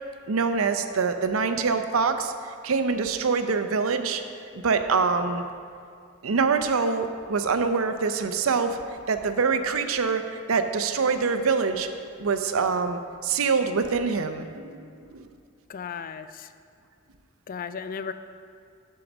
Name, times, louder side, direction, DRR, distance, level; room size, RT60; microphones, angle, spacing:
voice 1, 0.3-2.3 2.6-4.2 4.6-5.4 6.2-8.8 9.1-11.9 12.2-14.8 15.1-15.3, right 5 dB, 85° right, 8 dB, 0.6 m, -25 dB
voice 2, 15.7-16.5 17.5-18.1, left 6 dB, 40° left, 11 dB, 0.3 m, -35 dB
10.5 x 4.7 x 6.0 m, 2.3 s
head